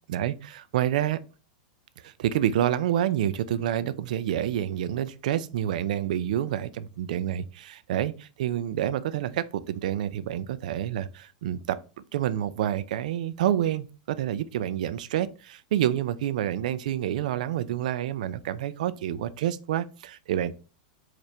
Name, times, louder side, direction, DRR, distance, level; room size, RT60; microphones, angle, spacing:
voice 1, 0.1-1.2 2.0-11.8 12.1-20.5, right 11 dB, 70° right, 0.3 m, -28 dB
4.3 x 2.5 x 3.1 m
supercardioid pair, 150°, 4 cm